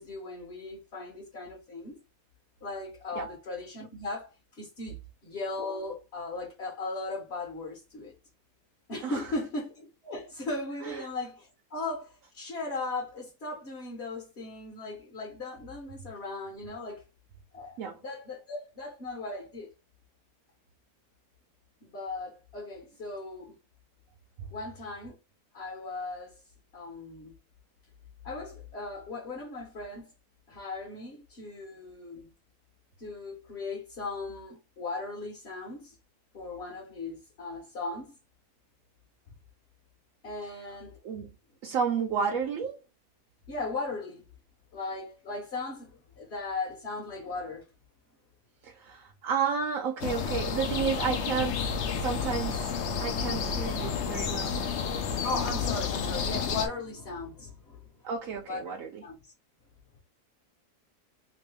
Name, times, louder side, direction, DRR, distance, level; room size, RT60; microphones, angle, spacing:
voice 1, 0.0-2.0 2.6-8.1 8.9-17.0 17.5-19.7 21.8-23.6 24.5-25.2 25.5-26.3 26.7-27.3 28.2-30.1 30.5-32.3 33.0-36.0 36.3-38.2 40.2-41.0 43.5-44.2 44.7-47.7 55.1-57.9 58.5-58.6 59.0-59.3, left 3 dB, 45° left, 1.1 m, -37 dB
voice 2, 41.6-42.8 48.6-52.7 53.0-54.6 58.0-59.0, right 6 dB, 65° right, 0.9 m, -31 dB
sound 1, 50.0-56.7, left 6 dB, 65° left, 0.7 m, -31 dB
3.0 x 2.6 x 3.3 m
omnidirectional pair, 1.7 m